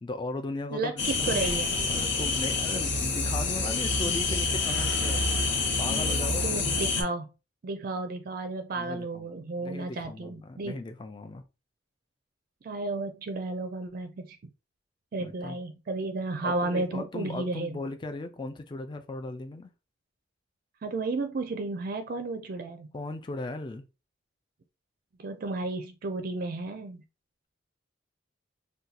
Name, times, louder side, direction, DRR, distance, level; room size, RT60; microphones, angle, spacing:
voice 1, 0.0-1.6 1.9-5.2 5.8-6.7 8.8-9.3 9.6-11.4 15.2-15.6 16.4-19.7 22.9-23.9, left 2 dB, 25° left, 0.3 m, -37 dB
voice 2, 0.7-1.8 4.1-4.2 6.4-7.3 7.6-10.8 12.6-14.4 15.1-17.8 20.8-22.9 25.2-27.0, right 3 dB, 50° right, 0.4 m, -33 dB
sound 1, 1.0-7.0, left 3 dB, 70° left, 0.8 m, -27 dB
2.7 x 2.2 x 3.9 m
head